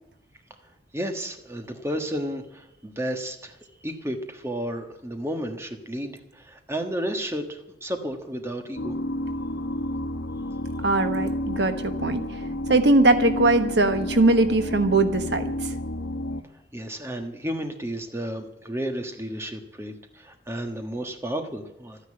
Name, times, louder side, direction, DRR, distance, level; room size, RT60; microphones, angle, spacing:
voice 1, 0.9-3.6 3.8-8.9 16.7-22.0, equal, 15° right, 5 dB, 1.3 m, -32 dB
sound 1, 8.8-16.4, left 1 dB, 90° left, 1.0 m, -31 dB
voice 2, 10.8-12.4 12.7-15.7, right 2 dB, 65° right, 8 dB, 1.2 m, -21 dB
13.0 x 9.9 x 8.7 m, 0.86 s
head